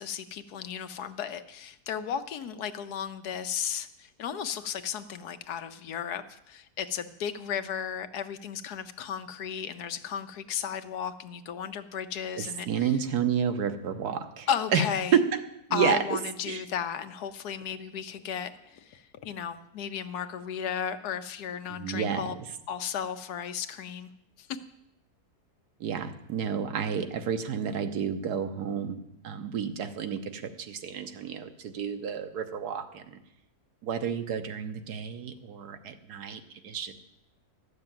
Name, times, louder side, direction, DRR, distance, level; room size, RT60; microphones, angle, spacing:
voice 1, 0.0-13.0 14.5-15.2 15.7-22.3 22.7-24.1 24.4-24.6, left 8 dB, 80° left, 10 dB, 1.3 m, -34 dB
voice 2, 12.4-14.8 15.1-15.4 15.7-16.0 16.5-16.6 21.8-22.3 25.8-29.0 29.2-33.0 33.8-36.9, right 7 dB, 85° right, 8 dB, 1.5 m, -30 dB
12.5 x 6.8 x 9.0 m, 0.83 s
omnidirectional pair, 1.7 m